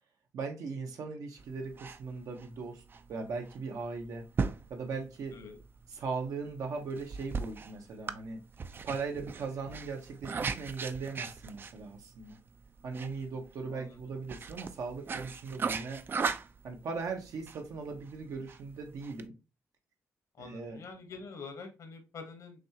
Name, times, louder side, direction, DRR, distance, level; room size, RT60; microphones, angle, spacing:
voice 1, 0.3-2.8 3.1-4.2 4.7-5.4 5.9-8.4 8.8-12.4 12.8-16.0 16.6-19.3 20.4-20.8, right 4 dB, 80° right, 1.0 m, -39 dB
sound 1, 1.4-19.3, right 5 dB, 40° right, 0.4 m, -39 dB
voice 2, 20.3-22.6, left 4 dB, 65° left, 1.1 m, -46 dB
6.2 x 2.4 x 2.8 m
cardioid pair, 100°, 6 cm